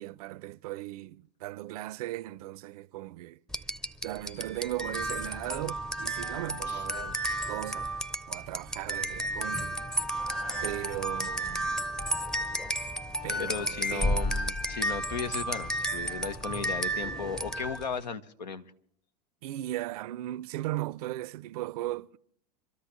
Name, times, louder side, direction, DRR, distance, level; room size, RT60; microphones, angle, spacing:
voice 1, 0.0-3.4 4.0-7.2 7.5-7.9 8.3-9.7 10.6-11.9 13.2-14.2 19.4-22.2, right 16 dB, 65° right, 0.5 m, -37 dB
sound 1, 3.5-17.9, right 1 dB, 5° left, 0.6 m, -32 dB
sound 2, 10.1-14.6, left 6 dB, 30° left, 1.3 m, -52 dB
voice 2, 13.4-18.7, left 5 dB, 90° left, 1.0 m, -36 dB
26.0 x 13.5 x 3.1 m
hypercardioid pair, 100°, 21 cm